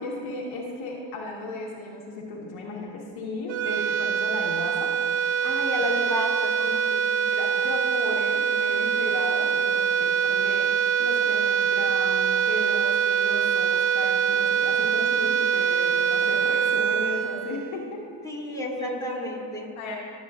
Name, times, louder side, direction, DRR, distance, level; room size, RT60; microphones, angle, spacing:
voice 1, 0.0-4.9 6.7-6.8 7.3-18.0 18.8-20.0, left 2 dB, 80° left, -1 dB, 1.6 m, -35 dB
sound 1, 3.5-18.0, right 7 dB, 70° right, 0.6 m, -24 dB
voice 2, 5.4-7.0 18.2-19.7, left 1 dB, 5° left, -3 dB, 2.8 m, -32 dB
18.0 x 7.9 x 2.5 m, 2.3 s
supercardioid pair, 65°, 48 cm